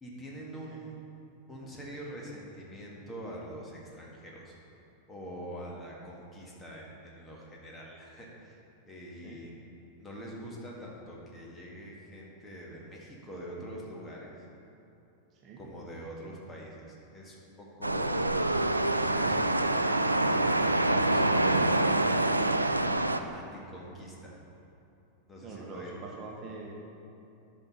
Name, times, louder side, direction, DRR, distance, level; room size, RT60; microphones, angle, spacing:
voice 1, 0.0-1.0 1.5-4.5 5.1-8.6 8.9-9.7 10.0-14.3 15.6-18.4 19.0-22.3 23.3-24.4 25.3-25.9, equal, 15° left, -3 dB, 1.6 m, -44 dB
sound 1, 17.8-23.2, right 2 dB, 85° right, 0.3 m, -26 dB
voice 2, 25.4-26.8, right 3 dB, 30° right, -1 dB, 1.1 m, -44 dB
10.0 x 5.6 x 4.1 m, 2.8 s
figure-of-eight pair, 90°, 0 cm